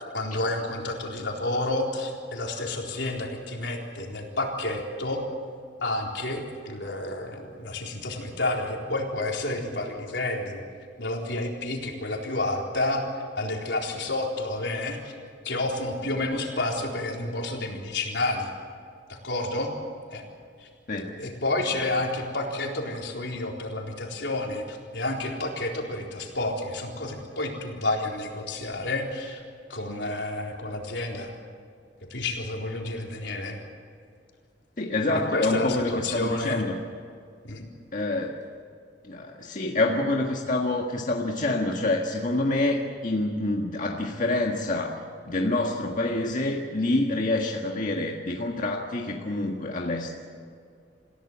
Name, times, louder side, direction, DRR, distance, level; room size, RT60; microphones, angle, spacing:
voice 1, 0.1-5.2 5.8-10.6 11.0-13.1 13.4-15.1 15.4-18.5 19.1-19.7 20.1-20.2 20.6-20.7 21.2-29.4 29.7-31.3 32.1-33.6 35.3-36.6 37.4-37.6, left 2 dB, 80° left, 0 dB, 4.0 m, -30 dB
voice 2, 34.8-36.8 37.9-38.3 39.0-50.1, left 2 dB, 45° left, 0 dB, 1.7 m, -27 dB
27.5 x 16.0 x 7.5 m, 2.2 s
head